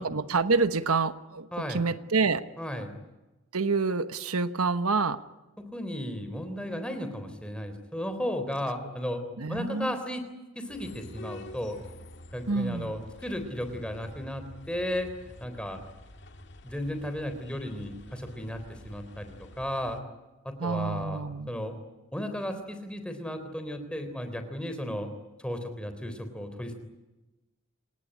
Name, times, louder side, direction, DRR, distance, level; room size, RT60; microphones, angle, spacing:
voice 1, 0.0-2.5 3.5-5.2 9.4-9.9 12.5-12.9 20.6-21.5, right 4 dB, 80° right, 12 dB, 1.2 m, -27 dB
voice 2, 1.5-1.8 2.6-2.9 5.7-9.2 9.5-10.2 10.6-11.8 12.3-15.1 15.4-15.8 16.6-20.0 20.4-21.7 22.1-25.1 25.4-26.7, equal, 5° left, 8 dB, 3.6 m, -34 dB
sound 1, 10.7-20.0, left 1 dB, 50° left, 2.1 m, -48 dB
27.5 x 18.5 x 9.9 m, 1.1 s
head